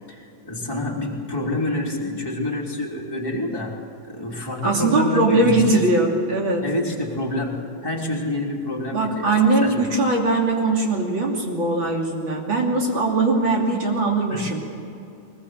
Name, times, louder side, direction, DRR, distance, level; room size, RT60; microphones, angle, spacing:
voice 1, 0.1-5.6 6.6-9.8 14.3-14.5, left 1 dB, 10° left, -3 dB, 3.0 m, -28 dB
voice 2, 4.6-6.6 8.9-14.6, right 2 dB, 75° right, 0 dB, 3.7 m, -20 dB
21.5 x 20.5 x 7.8 m, 2.7 s
omnidirectional pair, 2.2 m